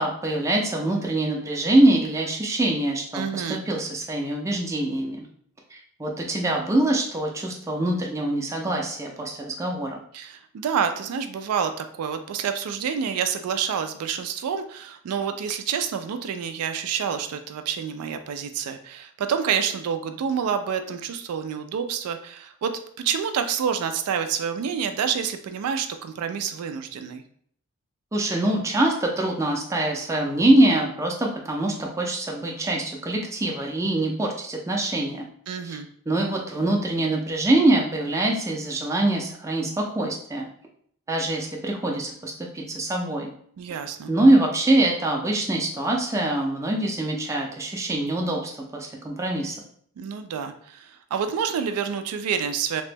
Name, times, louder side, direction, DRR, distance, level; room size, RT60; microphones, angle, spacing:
voice 1, 0.0-5.3 5.7-10.0 28.1-35.2 35.6-35.8 36.1-40.5 41.1-43.3 44.1-49.6, right 1 dB, 15° right, 0 dB, 0.4 m, -24 dB
voice 2, 3.1-3.6 10.1-22.7 23.0-27.2 35.5-35.9 43.6-44.1 50.0-52.8, right 7 dB, 85° right, 7 dB, 0.3 m, -28 dB
2.9 x 2.1 x 3.3 m, 0.63 s
head